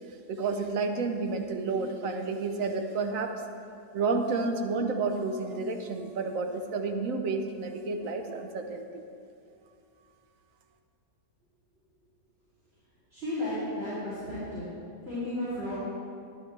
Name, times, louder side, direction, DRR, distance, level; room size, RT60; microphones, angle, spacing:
voice 1, 0.3-3.3 3.9-9.0, right 4 dB, 60° right, 5 dB, 1.1 m, -30 dB
voice 2, 13.1-14.7 15.0-15.7, left 1 dB, 40° right, -12 dB, 3.2 m, -33 dB
11.5 x 11.0 x 3.3 m, 2.5 s
omnidirectional pair, 1.7 m